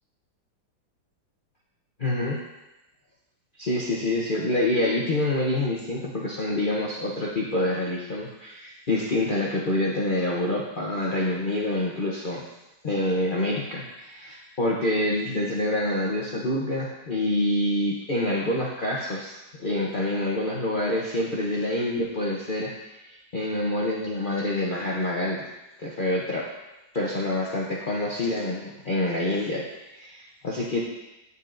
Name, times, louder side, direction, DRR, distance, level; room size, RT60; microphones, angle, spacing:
voice 1, 2.0-2.4 3.6-12.4 12.8-25.4 25.8-26.5 26.9-30.8, left 1 dB, 60° left, -4 dB, 0.5 m, -27 dB
9.8 x 6.8 x 2.5 m, 0.98 s
omnidirectional pair, 2.1 m